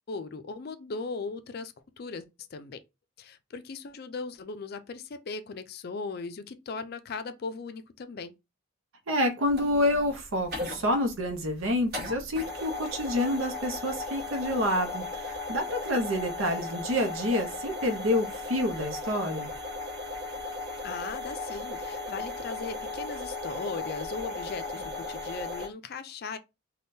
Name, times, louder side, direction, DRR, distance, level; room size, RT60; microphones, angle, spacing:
voice 1, 0.1-2.8 3.2-8.3 20.8-26.4, left 4 dB, 50° left, 0.4 m, -38 dB
voice 2, 9.1-19.5, left 1 dB, 70° right, 0.7 m, -28 dB
sound 1, 9.5-25.7, left 3 dB, 45° right, 1.3 m, -36 dB
3.5 x 2.3 x 2.6 m
head